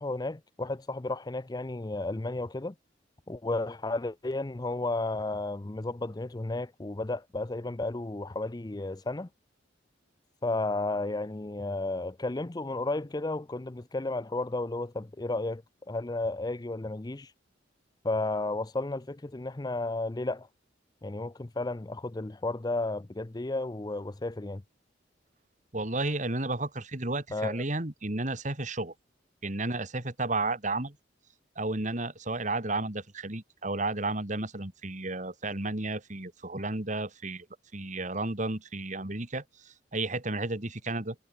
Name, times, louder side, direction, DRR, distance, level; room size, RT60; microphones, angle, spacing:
voice 1, 0.0-2.7 3.3-9.3 10.4-15.6 15.9-17.3 18.0-20.5 21.0-24.6 27.3-27.6, left 2 dB, 20° left, 0.5 m, -33 dB
voice 2, 25.7-28.9 29.4-31.0 31.6-37.5 37.7-41.2, right 2 dB, 40° right, 2.6 m, -32 dB
head